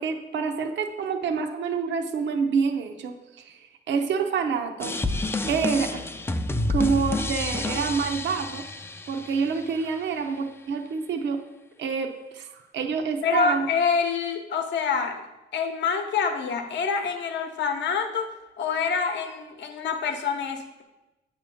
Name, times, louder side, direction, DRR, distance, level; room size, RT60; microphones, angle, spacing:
voice 1, 0.0-5.0 5.5-6.0 6.7-8.6 9.1-11.4 11.8-13.7, right 5 dB, 65° right, 4 dB, 0.7 m, -27 dB
sound 1, 4.8-9.8, left 2 dB, 10° left, 0.4 m, -29 dB
voice 2, 13.2-15.2 15.5-20.8, left 5 dB, 65° left, 6 dB, 0.8 m, -26 dB
8.2 x 3.1 x 6.3 m, 1.0 s
cardioid pair, 90°, 20 cm